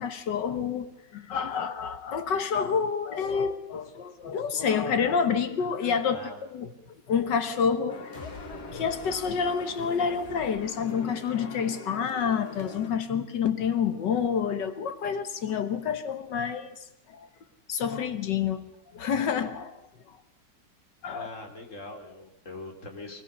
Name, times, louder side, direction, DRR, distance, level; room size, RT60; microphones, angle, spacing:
voice 1, 0.0-6.2 6.5-6.7 7.1-17.3 17.7-18.6 18.9-20.2 21.0-21.3, left 6 dB, 90° left, 10 dB, 2.0 m, -28 dB
sound 1, 7.9-12.9, left 2 dB, 65° left, 2.1 m, -43 dB
sound 2, 8.1-11.5, left 2 dB, 25° left, 3.1 m, -48 dB
voice 2, 21.1-23.2, left 2 dB, 45° left, 3 dB, 3.1 m, -42 dB
22.5 x 19.5 x 6.7 m, 0.82 s
omnidirectional pair, 1.9 m